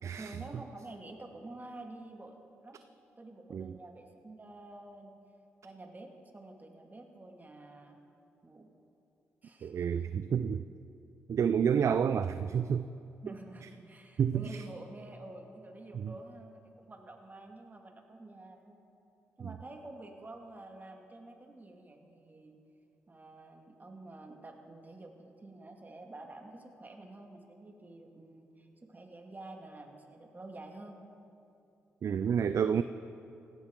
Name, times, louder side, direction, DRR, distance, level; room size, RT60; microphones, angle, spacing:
voice 1, 0.0-2.8 3.2-5.2 5.6-8.0 8.4-8.7 9.4-10.0 13.2-18.8 19.4-22.6 23.1-31.0, right 2 dB, 30° right, 3 dB, 2.1 m, -49 dB
voice 2, 9.6-10.6 11.3-12.9 14.2-14.4 15.9-16.1 32.0-32.8, right 7 dB, 55° right, 12 dB, 0.4 m, -29 dB
16.5 x 12.5 x 3.8 m, 2.6 s
supercardioid pair, 45°, 6 cm